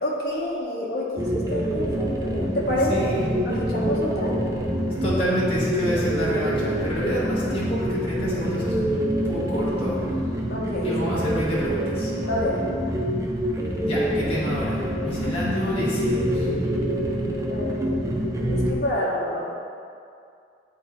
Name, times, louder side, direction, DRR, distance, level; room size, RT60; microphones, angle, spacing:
voice 1, 0.0-3.2 3.4-4.3 10.5-10.9 12.3-12.7 17.5-18.0 18.4-19.4, left 1 dB, 55° left, -5 dB, 1.1 m, -28 dB
sound 1, 1.2-18.7, equal, 15° right, 0.5 m, -26 dB
voice 2, 2.9-3.4 5.0-8.9 9.2-10.2 10.8-12.1 13.8-16.5, equal, 30° left, -9 dB, 1.4 m, -28 dB
9.2 x 4.1 x 3.0 m, 2.4 s
head